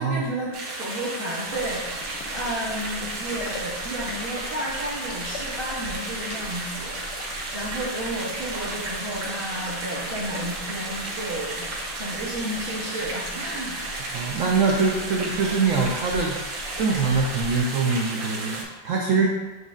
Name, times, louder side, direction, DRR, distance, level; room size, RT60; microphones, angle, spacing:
voice 1, 0.0-11.7 12.0-13.8, right 1 dB, 40° right, -8 dB, 0.8 m, -32 dB
sound 1, 0.5-18.6, right 2 dB, 60° right, 1.2 m, -33 dB
sound 2, 1.5-17.6, left 2 dB, 90° left, 1.3 m, -40 dB
voice 2, 14.1-16.4 16.8-19.3, right 4 dB, 85° right, -1 dB, 0.7 m, -23 dB
7.6 x 2.6 x 2.4 m, 1.2 s
omnidirectional pair, 1.9 m